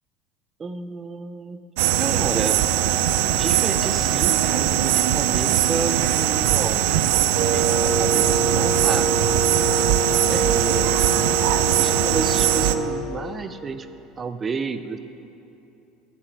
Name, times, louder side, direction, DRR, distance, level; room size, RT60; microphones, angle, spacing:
voice 1, 0.6-1.6 2.0-2.7 3.3-9.4 10.2-11.2 11.7-13.9 14.2-15.0, right 4 dB, 15° right, 11 dB, 0.4 m, -31 dB
sound 1, 1.8-12.8, right 12 dB, 80° right, 0.5 m, -21 dB
Wind instrument woodwind instrument, 7.3-13.1, right 3 dB, 65° right, 1.2 m, -26 dB
15.5 x 11.0 x 4.5 m, 2.9 s
cardioid pair, 175°, 0 cm